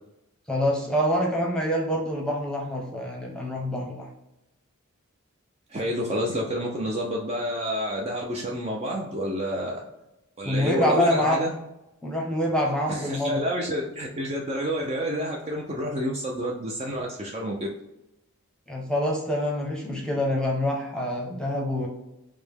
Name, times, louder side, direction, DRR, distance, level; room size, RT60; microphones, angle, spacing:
voice 1, 0.5-4.1 10.4-11.4 12.0-13.4 18.7-21.9, equal, 5° left, -2 dB, 0.8 m, -26 dB
voice 2, 5.7-9.8 10.4-11.5 12.9-17.7, equal, 30° right, -1 dB, 0.4 m, -29 dB
4.9 x 2.1 x 3.4 m, 0.91 s
head